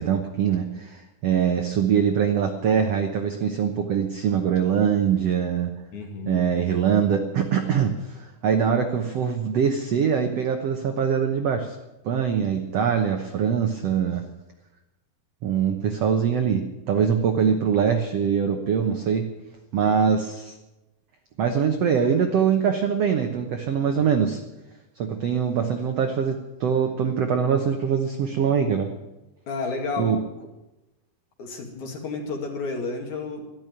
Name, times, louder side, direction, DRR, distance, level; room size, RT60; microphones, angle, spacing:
voice 1, 0.0-5.7 6.3-11.7 12.0-14.2 15.4-19.3 19.7-20.5 21.4-24.4 25.0-28.9 30.0-30.2, right 7 dB, 85° right, 5 dB, 1.4 m, -23 dB
voice 2, 5.9-6.5 29.5-30.2 31.4-33.5, left 3 dB, 55° left, 2 dB, 3.1 m, -31 dB
12.5 x 12.5 x 9.2 m, 0.99 s
omnidirectional pair, 4.6 m